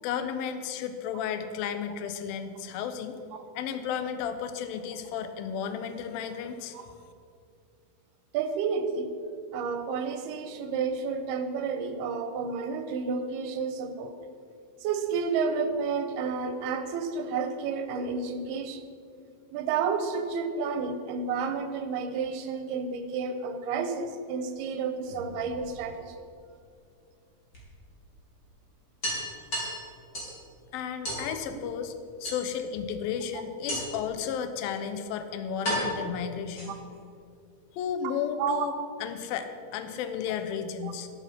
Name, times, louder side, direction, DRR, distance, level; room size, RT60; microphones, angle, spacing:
voice 1, 0.0-3.2 3.6-6.8 30.7-31.9 32.2-36.7 37.7-38.7 39.0-41.1, left 7 dB, 75° left, 9 dB, 2.6 m, -33 dB
voice 2, 8.3-9.1 9.5-14.1 14.8-18.8 19.5-26.2 33.3-33.4 38.4-38.9 40.8-40.9, right 5 dB, 85° right, 8 dB, 3.0 m, -31 dB
sound 1, 25.0-26.0 27.5-27.6 28.0-28.1 28.4-28.5 29.0-30.4 31.0-31.3 32.2-32.8 33.7-34.1 34.9-35.0 35.6-37.0, equal, 25° left, 4.3 m, -34 dB
12.5 x 12.0 x 5.8 m, 2.3 s
omnidirectional pair, 4.4 m